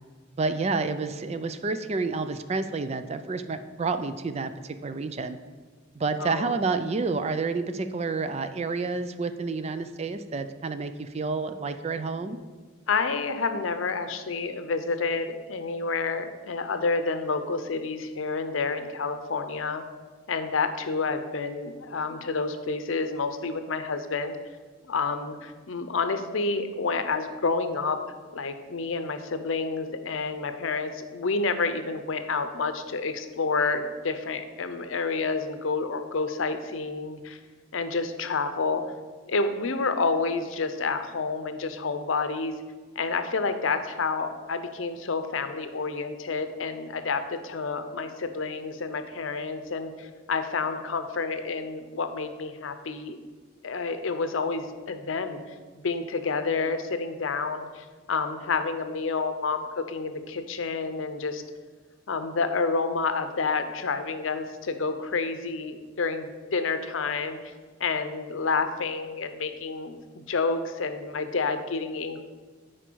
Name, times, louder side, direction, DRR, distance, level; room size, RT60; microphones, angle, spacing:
voice 1, 0.4-5.4 6.0-12.4, right 4 dB, 30° right, 10 dB, 0.4 m, -29 dB
voice 2, 6.2-6.5 12.9-19.8 20.3-24.4 24.8-28.0 28.3-37.4 37.7-38.8 39.3-42.5 43.0-53.2 53.6-61.4 62.1-67.4 67.8-72.2, left 4 dB, 75° left, 9 dB, 0.7 m, -29 dB
10.0 x 4.6 x 4.6 m, 1.4 s
head